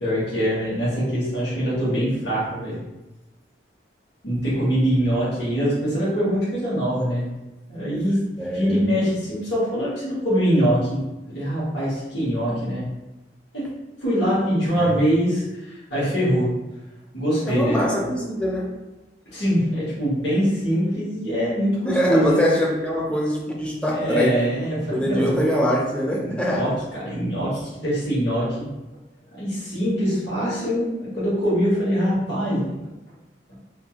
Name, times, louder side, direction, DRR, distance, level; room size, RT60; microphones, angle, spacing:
voice 1, 0.0-2.8 4.2-7.3 7.7-8.2 8.5-11.0 11.3-12.8 13.5-13.7 14.0-16.5 17.1-17.8 19.3-22.5 23.9-25.4 26.2-26.7 27.0-28.7 29.4-32.7, equal, 75° left, -9 dB, 1.1 m, -23 dB
voice 2, 8.4-8.8 14.8-15.0 17.5-18.8 21.9-24.4 24.9-26.7 30.4-30.9, equal, 5° left, -2 dB, 0.4 m, -23 dB
2.5 x 2.4 x 2.8 m, 1.0 s
head